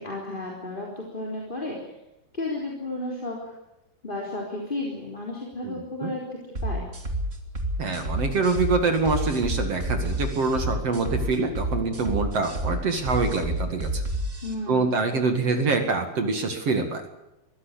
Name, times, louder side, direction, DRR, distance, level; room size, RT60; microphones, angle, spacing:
voice 1, 0.0-1.9 2.3-3.5 4.0-6.2 6.6-6.8 14.4-15.0, left 2 dB, 15° left, -2 dB, 3.5 m, -33 dB
sound 1, 6.5-14.5, right 1 dB, 20° right, 2.6 m, -29 dB
voice 2, 7.8-14.0 14.7-17.0, right 4 dB, 45° right, 6 dB, 2.6 m, -25 dB
23.0 x 16.0 x 8.4 m, 0.91 s
omnidirectional pair, 4.6 m